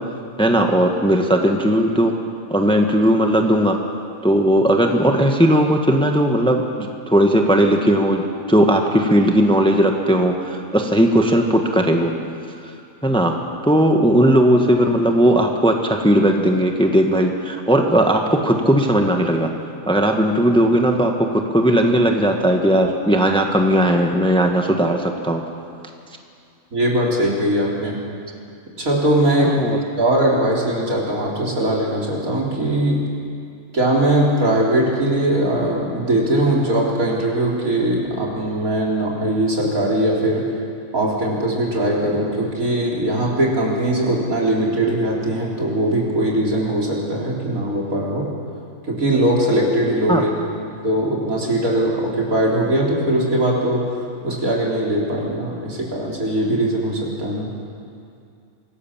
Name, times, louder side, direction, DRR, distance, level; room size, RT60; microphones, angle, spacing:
voice 1, 0.4-2.1 2.5-3.8 4.2-8.2 8.5-12.1 13.0-13.4 13.6-19.5 19.9-25.4 29.4-29.8 50.1-50.3, equal, 5° left, 3 dB, 1.4 m, -17 dB
voice 2, 26.7-28.0 28.8-29.6 30.0-33.1 33.7-40.5 40.9-48.3 48.8-50.3 50.8-53.8 54.2-57.5, right 1 dB, 75° right, -3 dB, 4.2 m, -20 dB
25.5 x 18.0 x 7.4 m, 2.4 s
omnidirectional pair, 1.5 m